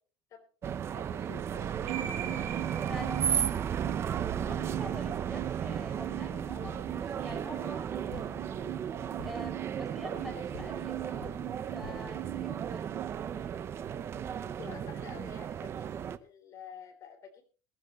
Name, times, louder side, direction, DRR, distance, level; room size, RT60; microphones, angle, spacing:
voice 1, 0.3-2.9 11.8-12.1 14.4-17.4, left 7 dB, 25° left, 6 dB, 3.4 m, -50 dB
sound 1, 0.6-16.2, right 8 dB, 20° right, 0.7 m, -35 dB
sound 2, 1.9-13.9, right 15 dB, 60° right, 3.1 m, -42 dB
voice 2, 4.5-8.7 9.2-11.3 11.7-12.8 13.3-13.5, equal, ahead, 2 dB, 4.4 m, -46 dB
sound 3, 6.6-10.3 10.5-13.0, left 7 dB, 90° left, 7.1 m, -52 dB
21.5 x 13.0 x 3.0 m, 0.35 s
cardioid pair, 170°, 12 cm